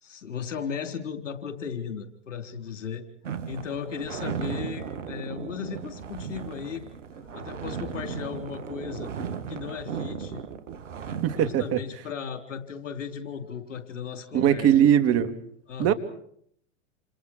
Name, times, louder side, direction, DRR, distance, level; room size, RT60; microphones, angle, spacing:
voice 1, 0.0-3.0 3.5-6.9 7.3-9.1 9.5-10.4 11.3-14.7 15.7-15.9, left 7 dB, 75° left, 7 dB, 4.2 m, -36 dB
sound 1, 3.2-11.8, right 7 dB, 75° right, 2.4 m, -36 dB
voice 2, 11.2-11.8 14.3-15.4 15.8-15.9, right 10 dB, 40° right, 7 dB, 3.0 m, -20 dB
28.5 x 28.5 x 4.7 m, 0.66 s
hypercardioid pair, 90°, 37 cm